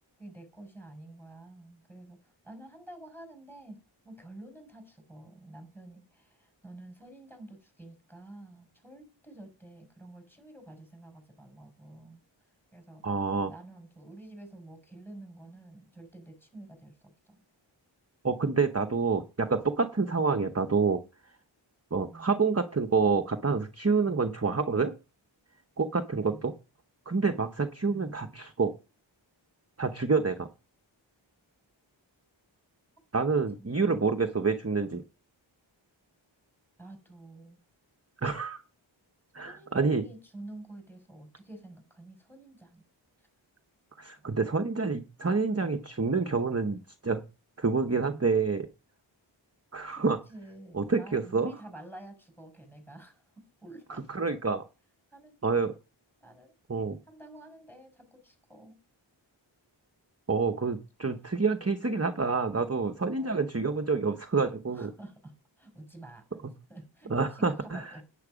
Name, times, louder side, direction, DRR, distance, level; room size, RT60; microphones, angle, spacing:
voice 1, 0.2-3.8 4.0-12.2 12.7-13.0 13.5-17.4 22.0-22.3 26.1-26.4 27.9-28.2 36.8-37.6 39.4-42.8 45.2-45.3 50.0-53.2 53.6-54.0 55.1-55.3 56.2-56.5 57.1-58.8 63.0-63.4 64.7-66.2 66.7-68.0, right 1 dB, 5° left, 5 dB, 6.2 m, -49 dB
voice 2, 13.0-13.5 18.2-21.0 21.9-24.9 25.8-26.5 27.1-28.7 29.8-30.5 33.1-35.0 38.2-38.6 39.3-40.0 44.0-47.2 47.6-48.7 49.7-50.2 50.7-51.5 54.1-54.6 55.4-55.7 56.7-57.0 60.3-64.9 67.1-67.9, right 4 dB, 30° right, 6 dB, 0.9 m, -28 dB
10.5 x 9.3 x 5.1 m, 0.31 s
wide cardioid pair, 45°, 47 cm